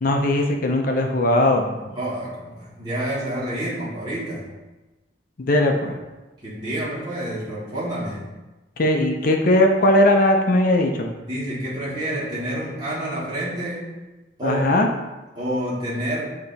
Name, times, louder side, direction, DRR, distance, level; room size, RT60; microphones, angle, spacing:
voice 1, 0.0-1.7 5.4-6.0 8.8-11.1 14.4-14.9, left 1 dB, 50° left, 3 dB, 0.6 m, -19 dB
voice 2, 1.6-4.5 6.4-8.3 11.3-13.9 14.4-14.6 15.3-16.3, right 1 dB, 25° right, -9 dB, 1.5 m, -28 dB
8.1 x 2.9 x 4.0 m, 1.1 s
head